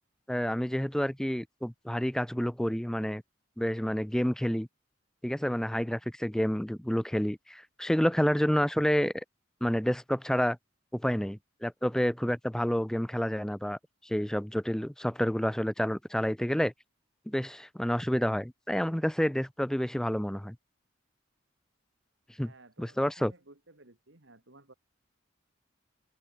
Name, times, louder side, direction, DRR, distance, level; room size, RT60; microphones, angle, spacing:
voice 1, 0.3-3.2 3.6-4.7 5.2-9.1 9.6-10.6 10.9-13.8 14.0-16.7 17.3-20.6 22.4-22.5 22.8-23.3, equal, 5° left, 0.5 m, -29 dB
voice 2, 22.4-24.7, right 2 dB, 70° right, 2.8 m, -55 dB
open air
head